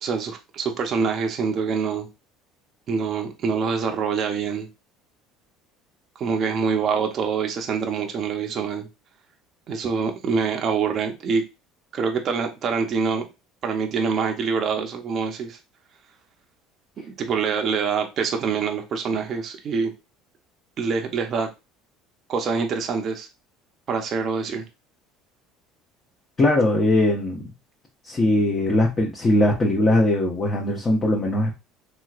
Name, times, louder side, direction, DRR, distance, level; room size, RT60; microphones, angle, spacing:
voice 1, 0.0-2.1 2.9-4.7 6.2-8.9 9.7-11.4 11.9-13.3 13.6-15.6 17.2-19.9 20.8-21.5 22.3-23.3 23.9-24.6, right 5 dB, 45° right, 3 dB, 0.6 m, -25 dB
voice 2, 26.4-27.4 28.1-31.5, left 1 dB, 30° left, -1 dB, 0.8 m, -20 dB
3.1 x 3.0 x 2.4 m, 0.26 s
supercardioid pair, 105°, 0 cm